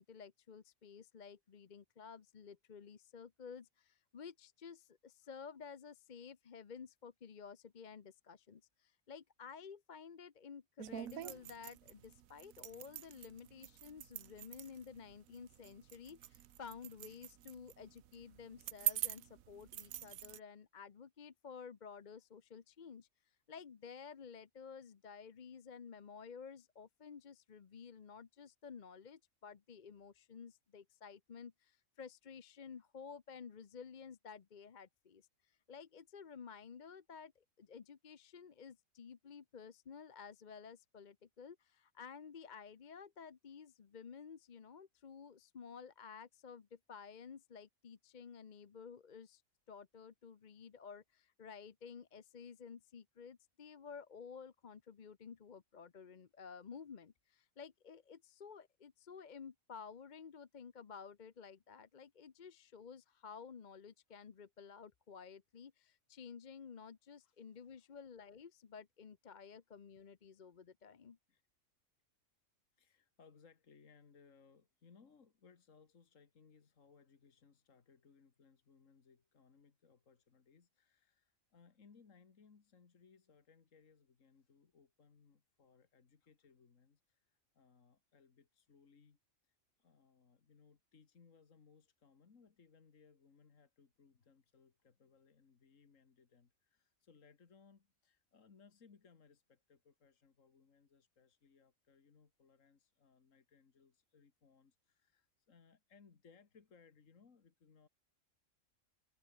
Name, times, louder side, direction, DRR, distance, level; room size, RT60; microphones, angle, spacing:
voice 1, 0.0-49.4 49.7-71.2, left 6 dB, 40° left, 0.8 m, -53 dB
sound 1, 10.8-20.4, right 12 dB, 90° right, 1.2 m, -45 dB
voice 2, 67.2-67.9 71.3-71.4 72.7-89.2 89.4-107.9, left 5 dB, 70° left, 2.2 m, -66 dB
omnidirectional pair, 1.4 m